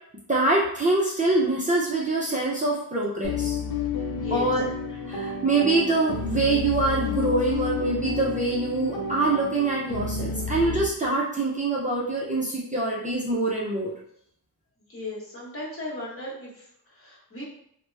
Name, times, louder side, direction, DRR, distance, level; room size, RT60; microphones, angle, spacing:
voice 1, 0.3-3.6 4.3-4.6 4.9-13.9, right 2 dB, 20° right, -5 dB, 0.5 m, -25 dB
sound 1, 3.2-10.9, left 4 dB, 70° left, 0.6 m, -30 dB
voice 2, 4.1-4.5 14.9-17.4, left 2 dB, 35° left, -5 dB, 1.1 m, -36 dB
2.8 x 2.1 x 3.2 m, 0.69 s
wide cardioid pair, 120°, 39 cm